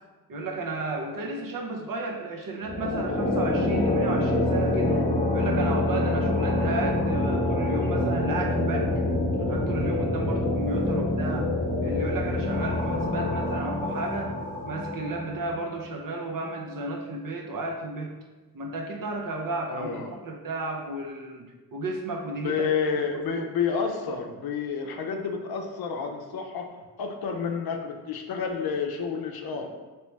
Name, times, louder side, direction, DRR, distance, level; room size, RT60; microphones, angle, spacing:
voice 1, 0.3-5.0 5.3-8.9 9.4-11.5 11.8-14.4 14.7-18.2 18.5-22.7 23.1-23.5, right 2 dB, 55° right, 2 dB, 0.6 m, -33 dB
sound 1, 2.6-15.8, left 1 dB, 20° left, 0.9 m, -26 dB
voice 2, 19.7-20.2 22.4-26.7 27.0-29.7, left 6 dB, 65° left, 4 dB, 0.6 m, -30 dB
3.1 x 3.0 x 3.2 m, 1.2 s
supercardioid pair, 50°, 41 cm